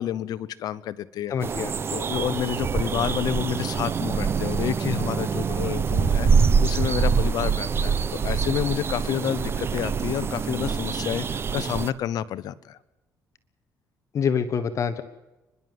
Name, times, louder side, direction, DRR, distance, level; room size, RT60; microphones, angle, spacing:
voice 1, 0.0-1.3 1.9-12.8, left 10 dB, 65° left, 17 dB, 0.9 m, -29 dB
voice 2, 1.3-1.7 14.1-15.0, left 7 dB, 45° left, 9 dB, 1.2 m, -25 dB
sound 1, 1.4-11.9, right 6 dB, 35° right, 0.8 m, -25 dB
29.5 x 11.5 x 7.7 m, 1.0 s
cardioid pair, 120°, 7 cm